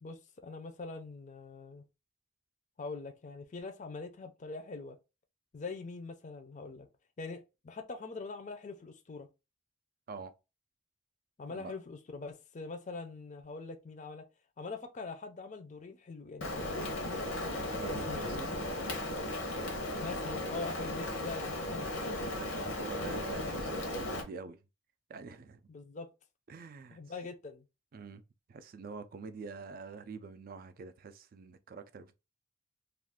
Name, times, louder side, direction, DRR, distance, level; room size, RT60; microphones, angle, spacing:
voice 1, 0.0-1.8 2.8-5.0 5.5-6.9 7.2-9.3 11.4-14.2 14.6-17.3 17.9-18.4 20.0-21.9 25.7-26.1 26.9-27.6, left 3 dB, 40° left, 0.4 m, -43 dB
Rain, 16.4-24.2, left 1 dB, 90° left, 0.8 m, -36 dB
voice 2, 17.7-18.6 22.4-24.6 25.1-25.6 26.5-27.0 27.9-28.2 28.5-32.1, right 4 dB, 45° right, 0.3 m, -46 dB
2.4 x 2.4 x 3.5 m
head